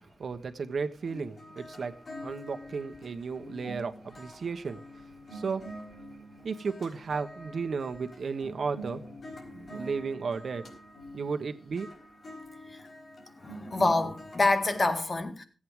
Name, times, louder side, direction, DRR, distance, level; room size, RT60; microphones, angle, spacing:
voice 1, 0.0-5.8 6.4-9.0 9.5-10.6 11.1-11.9, right 5 dB, 80° right, 1.2 m, -34 dB
sound 1, 1.0-14.9, equal, 70° left, 4.3 m, -46 dB
voice 2, 13.4-15.4, left 2 dB, 40° left, 1.9 m, -27 dB
16.0 x 8.6 x 4.7 m
wide cardioid pair, 100°, 0 cm